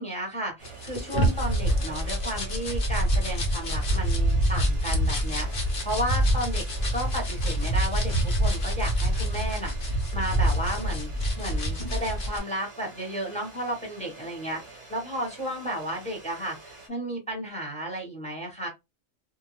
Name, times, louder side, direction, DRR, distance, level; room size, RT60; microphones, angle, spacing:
voice 1, 0.0-6.6 6.9-11.1 11.4-18.7, right 1 dB, 5° left, -1 dB, 1.0 m, -33 dB
sound 1, 0.6-12.4, equal, 45° left, 0.9 m, -26 dB
sound 2, 0.6-16.9, right 3 dB, 30° right, 0.7 m, -47 dB
2.7 x 2.2 x 3.0 m, 0.22 s
omnidirectional pair, 1.3 m